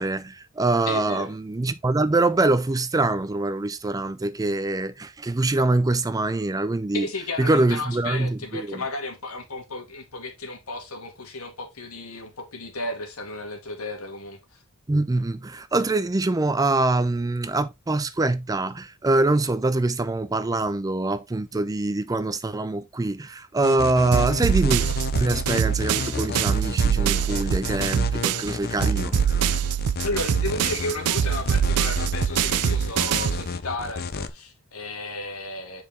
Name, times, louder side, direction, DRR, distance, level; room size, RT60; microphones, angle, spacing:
voice 1, 0.0-7.1 7.4-8.8 14.9-24.8 25.2-29.5, right 2 dB, 15° right, 0.4 m, -24 dB
voice 2, 0.9-1.3 6.9-14.4 30.0-35.8, left 2 dB, 75° left, 2.1 m, -33 dB
sound 1, 23.6-34.3, left 4 dB, 45° left, 0.6 m, -32 dB
sound 2, 24.1-28.5 28.8-33.5, right 9 dB, 85° right, 0.4 m, -24 dB
7.2 x 4.8 x 3.4 m
head